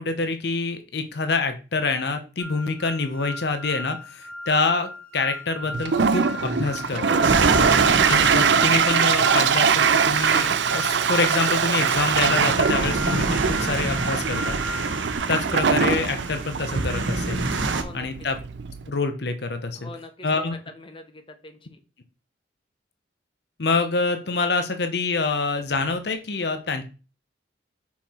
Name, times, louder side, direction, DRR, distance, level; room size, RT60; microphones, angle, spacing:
voice 1, 0.0-7.2 8.1-14.6 15.3-17.4 17.9-18.4 18.9-19.9 20.2-20.6 23.6-26.8, left 3 dB, 60° left, 8 dB, 0.8 m, -26 dB
sound 1, 2.4-15.2, left 1 dB, 5° left, 1.5 m, -37 dB
Toilet flush, 5.7-18.9, right 6 dB, 70° right, 0.5 m, -22 dB
voice 2, 6.8-7.7 17.7-18.3 19.8-21.8, left 2 dB, 30° left, 7 dB, 0.8 m, -42 dB
sound 2, 7.2-17.8, right 3 dB, 85° right, 0.9 m, -28 dB
5.6 x 4.6 x 4.3 m, 0.34 s
head